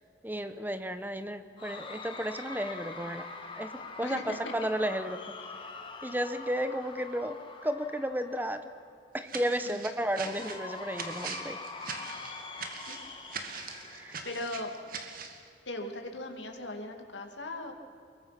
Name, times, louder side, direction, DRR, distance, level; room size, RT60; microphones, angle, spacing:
voice 1, 0.2-3.2 3.5-5.2 6.0-8.7 9.1-11.6 13.9-14.2, equal, 10° right, 10 dB, 1.0 m, -33 dB
Cheering / Crowd, 1.6-8.9 10.1-14.9, left 4 dB, 30° left, 2.2 m, -44 dB
voice 2, 4.0-4.5 9.6-9.8 12.9-13.0 14.2-14.7 15.7-17.7, left 2 dB, 80° left, 4 dB, 2.6 m, -38 dB
sound 1, 9.3-15.4, right 5 dB, 50° right, 2.1 m, -41 dB
24.5 x 22.0 x 6.0 m, 2.5 s
head